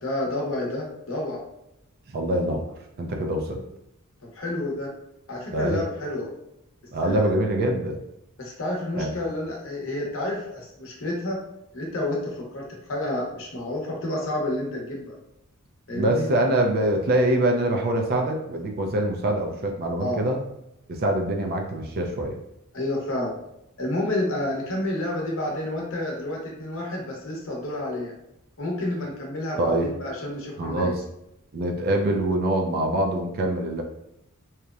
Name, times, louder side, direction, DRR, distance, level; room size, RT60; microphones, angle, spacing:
voice 1, 0.0-1.4 4.3-4.9 5.3-6.3 7.0-7.3 8.4-11.4 11.7-15.1 15.9-16.3 20.0-20.2 22.7-23.4 23.8-28.1 28.6-30.9, left 1 dB, 65° left, -2 dB, 0.8 m, -29 dB
voice 2, 2.1-2.7 3.0-3.6 5.5-5.8 6.9-8.0 9.0-9.1 15.9-20.4 20.9-22.4 29.6-29.9 30.6-30.9 31.5-33.8, right 1 dB, 45° right, 2 dB, 0.4 m, -24 dB
2.8 x 2.0 x 2.3 m, 0.84 s
head